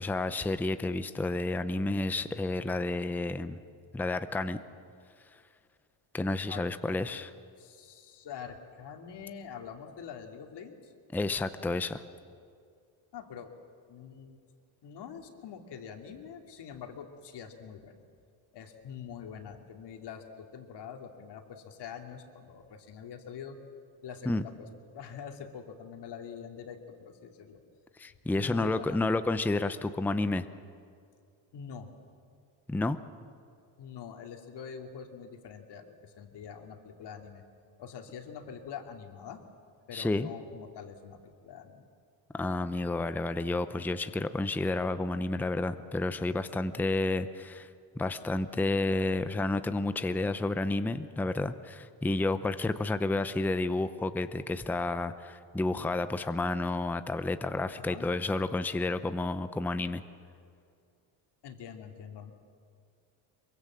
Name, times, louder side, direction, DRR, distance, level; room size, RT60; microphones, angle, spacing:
voice 1, 0.0-3.6 3.9-4.6 6.1-7.3 11.1-12.0 24.3-24.4 28.0-30.5 32.7-33.0 39.9-40.3 42.3-47.7 48.0-60.0, left 2 dB, 5° left, 11 dB, 0.6 m, -30 dB
voice 2, 7.6-10.9 13.1-13.5 13.9-14.4 14.8-18.0 18.5-23.6 24.0-24.7 24.9-27.6 28.4-29.0 31.5-31.9 33.8-37.4 37.8-39.4 39.9-41.9 57.8-58.1 61.4-62.3, left 7 dB, 55° left, 4 dB, 2.6 m, -44 dB
23.5 x 23.5 x 7.5 m, 2.3 s
cardioid pair, 120°, 49 cm